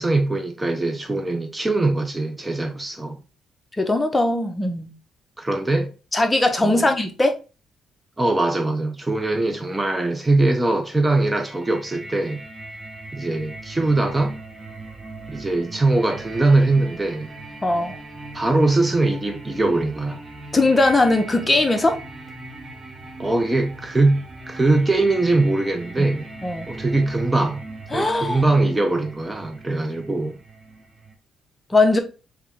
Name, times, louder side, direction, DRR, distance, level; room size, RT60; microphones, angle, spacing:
voice 1, 0.0-3.2 5.4-5.9 6.6-6.9 8.2-12.4 13.1-14.4 15.3-17.3 18.3-20.2 23.2-26.3 26.7-27.6 27.9-30.4, right 2 dB, 15° right, 0.6 m, -21 dB
voice 2, 3.8-4.9 6.1-7.4 17.6-18.0 20.5-22.0 26.0-26.1 26.4-26.7 27.9-28.4 31.7-32.0, left 2 dB, 20° left, 0.8 m, -19 dB
sound 1, 11.4-31.1, right 2 dB, 30° right, 1.2 m, -39 dB
3.5 x 3.4 x 3.5 m
cardioid pair, 90°, 0 cm